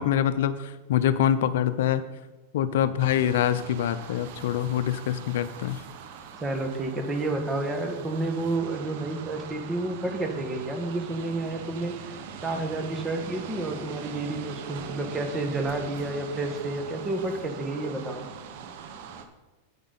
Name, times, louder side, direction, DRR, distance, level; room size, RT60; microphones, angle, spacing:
voice 1, 0.0-2.0 2.5-5.8, left 10 dB, 70° left, 12 dB, 0.6 m, -25 dB
sound 1, 3.0-19.2, right 6 dB, 60° right, 1.1 m, -42 dB
voice 2, 6.4-18.3, right 2 dB, 15° right, 4 dB, 1.6 m, -30 dB
10.0 x 8.6 x 4.2 m, 1.1 s
hypercardioid pair, 125°, 0 cm